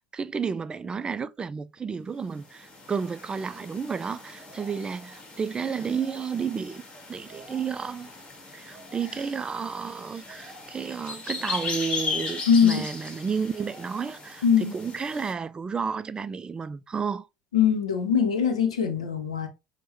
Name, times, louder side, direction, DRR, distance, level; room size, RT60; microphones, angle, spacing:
voice 1, 0.0-8.1 8.5-17.3, right 6 dB, 25° right, 0.3 m, -32 dB
sound 1, 2.3-15.3, left 4 dB, 30° left, 1.7 m, -38 dB
voice 2, 12.5-12.8 14.4-14.7 17.5-19.5, left 7 dB, 90° left, 0.7 m, -22 dB
6.0 x 2.2 x 3.0 m
hypercardioid pair, 65°, 3 cm